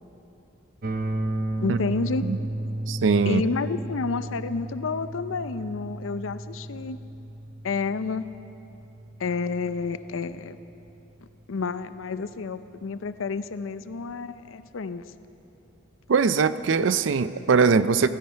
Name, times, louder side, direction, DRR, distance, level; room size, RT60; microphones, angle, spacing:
sound 1, 0.8-10.7, right 1 dB, 50° right, 0.8 m, -34 dB
voice 1, 1.6-2.2 3.2-7.0 7.6-8.3 9.2-10.6 11.5-15.0, left 4 dB, 90° left, 13 dB, 0.6 m, -30 dB
voice 2, 2.9-3.4 16.1-18.1, right 5 dB, 65° right, 14 dB, 0.5 m, -21 dB
15.5 x 14.0 x 5.7 m, 2.8 s
head